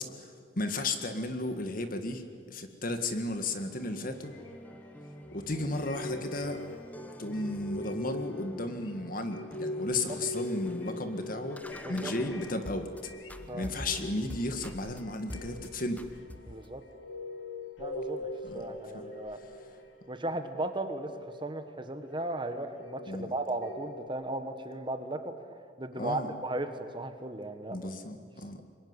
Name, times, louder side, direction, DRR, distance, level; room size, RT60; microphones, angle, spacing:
voice 1, 0.0-4.3 5.3-6.6 7.2-13.1 13.5-16.0 18.4-18.6 18.9-19.1 23.1-23.3 26.0-26.3 27.7-28.6, left 2 dB, 45° left, 7 dB, 1.9 m, -34 dB
sound 1, 3.3-13.0 13.3-15.0 15.3-15.7 16.0-16.7, left 1 dB, 10° left, 1.0 m, -46 dB
sound 2, 4.2-20.4 20.9-24.1, left 2 dB, 80° left, 2.6 m, -42 dB
voice 2, 16.5-16.8 17.8-18.3 18.5-19.4 20.1-25.3 25.8-27.9, right 2 dB, 25° right, 8 dB, 1.5 m, -36 dB
25.5 x 21.5 x 9.7 m, 2.1 s
head